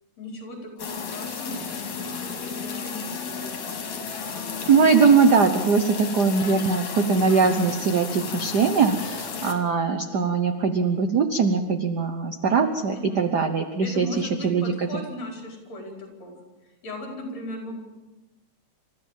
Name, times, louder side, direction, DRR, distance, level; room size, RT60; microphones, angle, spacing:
voice 1, 0.2-3.7 12.9-13.3 13.8-16.3 16.8-17.8, left 1 dB, 65° left, 1 dB, 6.0 m, -37 dB
sound 1, 0.8-9.5, left 5 dB, 80° left, 4.2 m, -33 dB
voice 2, 4.7-14.9, right 5 dB, 65° right, 7 dB, 1.0 m, -21 dB
29.0 x 14.0 x 7.4 m, 1.1 s
omnidirectional pair, 3.3 m